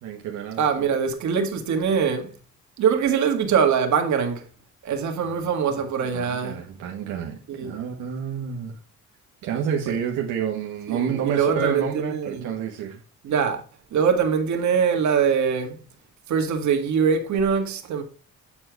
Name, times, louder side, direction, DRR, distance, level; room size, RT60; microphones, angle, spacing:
voice 1, 0.0-0.9 5.3-5.4 6.1-8.8 9.4-13.0, right 8 dB, 90° right, 1.3 m, -29 dB
voice 2, 0.6-2.3 2.8-4.5 4.8-6.6 7.5-7.8 10.9-12.5 13.2-13.6 13.9-15.8 16.3-18.0, right 6 dB, 70° right, 1.6 m, -23 dB
8.6 x 4.4 x 4.6 m
cardioid pair, 90°, 30 cm